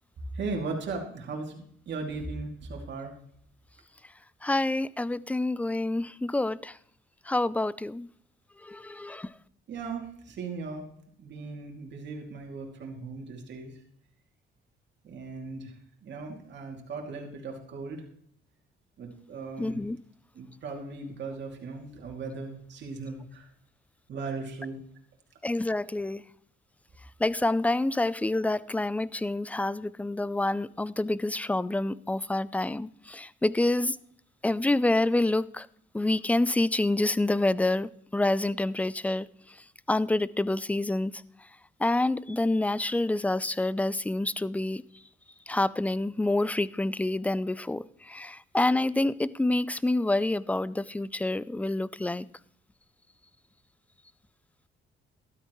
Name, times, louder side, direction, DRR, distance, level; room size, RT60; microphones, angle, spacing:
voice 1, 0.3-3.1 9.7-10.9 11.2-13.8 15.0-18.1 19.0-19.8 20.3-23.5 24.1-24.8, right 4 dB, 65° right, 2.6 m, -37 dB
voice 2, 4.4-6.8 7.3-8.1 8.6-9.3 19.6-20.0 25.4-26.2 27.2-34.0 34.4-35.7 35.9-39.6 39.9-41.2 41.8-44.8 45.5-52.3, left 2 dB, 5° left, 0.4 m, -27 dB
13.0 x 12.5 x 3.1 m
cardioid pair, 90°, 20 cm